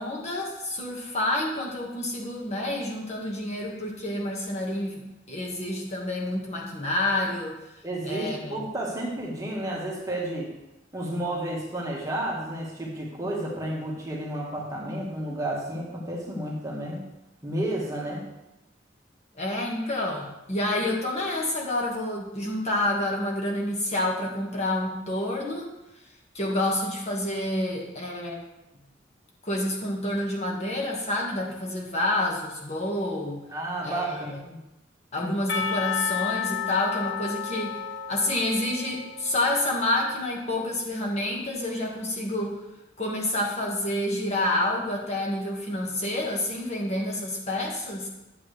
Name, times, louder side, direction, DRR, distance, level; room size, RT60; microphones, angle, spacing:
voice 1, 0.0-7.6 8.0-8.6 19.3-25.7 26.3-28.4 29.4-33.4 33.8-34.4 35.1-37.8 38.1-42.5 43.0-48.1, left 1 dB, 40° left, -2 dB, 1.7 m, -28 dB
voice 2, 7.8-10.5 10.9-17.0 17.4-18.2 33.5-34.6 35.2-35.3, right 1 dB, 20° right, -3 dB, 1.7 m, -31 dB
Percussion, 35.5-40.3, left 8 dB, 80° left, 0.9 m, -32 dB
10.5 x 7.9 x 3.3 m, 0.95 s
head